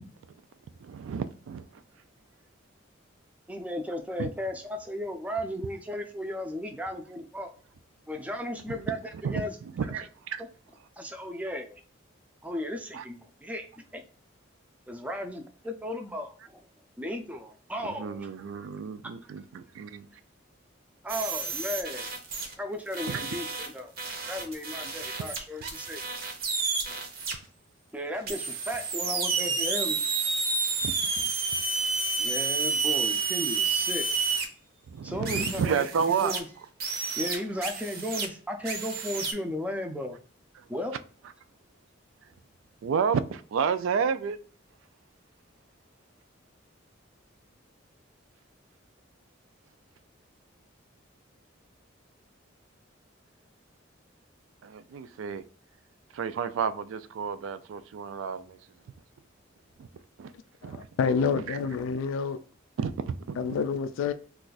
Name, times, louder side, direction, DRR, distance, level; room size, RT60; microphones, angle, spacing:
voice 1, 0.8-1.7 4.2-4.3 8.7-8.8 9.2-9.4 9.8-10.4 12.9-13.0 18.0-20.1 23.1-23.2 25.2-25.3 30.8-30.9 34.9-36.3 42.8-44.4 54.6-55.4 56.1-58.6 59.8-59.9 60.2-60.3 60.6-60.9 61.5-61.6 62.8-63.4, right 6 dB, 85° right, 0.3 m, -31 dB
voice 2, 3.5-7.5 8.1-9.6 11.0-11.8 12.4-13.7 13.9-14.0 14.9-16.6 17.0-18.3 21.0-22.1 22.6-23.9 24.3-26.0 27.9-30.0 32.2-34.1 35.0-35.8 36.2-36.5 37.2-40.2 40.7-40.9, left 1 dB, 5° right, 0.4 m, -35 dB
sound 1, 21.1-22.5 22.9-27.3 28.3-34.4 35.2-36.4 36.8-38.3 38.6-39.3, right 4 dB, 50° right, 0.6 m, -30 dB
voice 3, 60.6-62.4 63.4-64.1, left 5 dB, 90° left, 0.3 m, -28 dB
2.4 x 2.3 x 3.9 m
head